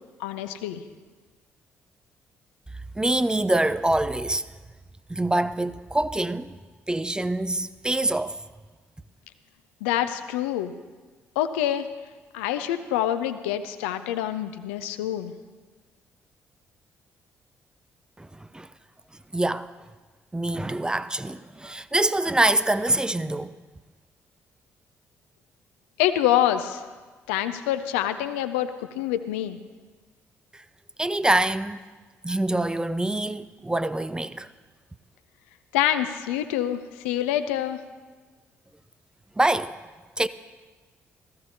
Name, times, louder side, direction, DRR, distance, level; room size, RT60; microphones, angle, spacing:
voice 1, 0.2-0.8 9.8-10.7 11.4-11.9 12.3-15.3 26.0-26.8 27.3-29.6 35.7-37.8, left 11 dB, 70° left, 0.6 m, -26 dB
voice 2, 3.0-4.4 5.1-6.5 6.9-8.4 18.2-18.3 18.5-18.7 19.3-19.7 20.3-23.5 31.0-31.8 32.2-34.5 39.4-39.8 40.2-40.3, right 1 dB, 10° right, 0.5 m, -25 dB
17.0 x 14.0 x 2.8 m
figure-of-eight pair, 45°, 7 cm